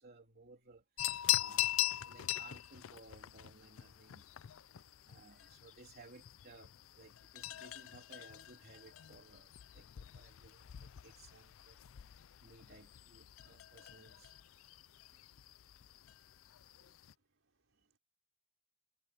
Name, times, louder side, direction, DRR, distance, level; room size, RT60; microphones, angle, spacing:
voice 1, 0.0-4.5 4.8-11.8 12.1-14.4 15.1-15.2 16.6-16.7, right 3 dB, 50° right, 3.4 m, -60 dB
sound 1, 1.0-17.1, left 14 dB, 80° left, 0.4 m, -42 dB
voice 2, 17.3-18.0, right 2 dB, 75° right, 5.6 m, -78 dB
head